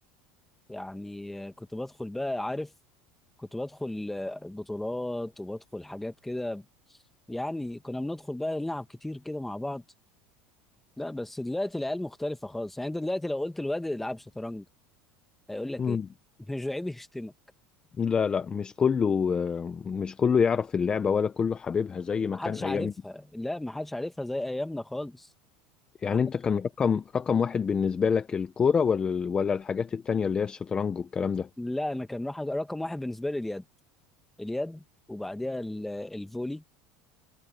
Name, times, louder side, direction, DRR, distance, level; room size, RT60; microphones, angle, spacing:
voice 1, 0.7-2.7 3.4-6.6 7.3-9.8 11.0-14.6 15.5-16.0 16.5-17.3 22.3-25.3 31.6-33.6 34.4-36.6, left 1 dB, 5° left, 1.4 m, -34 dB
voice 2, 18.0-22.9 26.0-31.5, left 6 dB, 20° left, 0.8 m, -26 dB
supercardioid pair, 145°, 4 cm